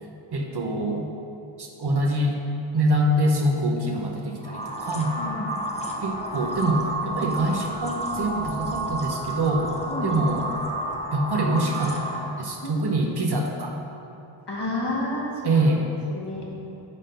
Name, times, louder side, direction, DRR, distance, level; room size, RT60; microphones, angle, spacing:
voice 1, 0.3-1.1 1.6-2.3 2.7-5.2 6.0-9.7 10.0-10.4 11.1-13.7 15.4-15.8, right 1 dB, 55° right, 0 dB, 0.8 m, -25 dB
sound 1, 4.4-12.5, right 1 dB, 15° left, 0.7 m, -31 dB
voice 2, 5.1-5.5 9.9-10.1 12.6-12.9 14.5-15.2 15.5-15.6 16.1-16.5, left 2 dB, 55° left, -4 dB, 1.4 m, -30 dB
5.3 x 3.7 x 5.6 m, 2.9 s
wide cardioid pair, 40°, 49 cm